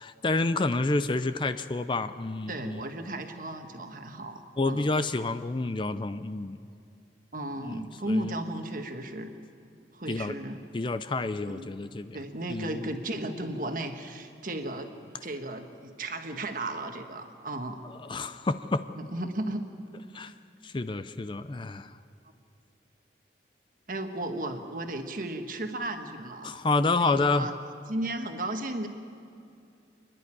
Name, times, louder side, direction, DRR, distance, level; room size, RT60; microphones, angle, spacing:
voice 1, 0.0-2.8 4.6-6.6 7.6-8.3 10.1-10.4 10.7-12.2 12.5-12.9 18.0-18.8 20.1-20.3 20.6-21.9 26.4-27.5, left 3 dB, 25° left, 11 dB, 0.5 m, -29 dB
voice 2, 2.5-4.9 7.3-9.3 9.9-10.6 11.5-11.7 12.1-14.9 15.2-17.8 18.9-19.6 23.9-26.5 27.0-27.5 27.9-28.9, right 1 dB, 50° right, 5 dB, 1.5 m, -34 dB
27.5 x 11.0 x 10.0 m, 2.5 s
head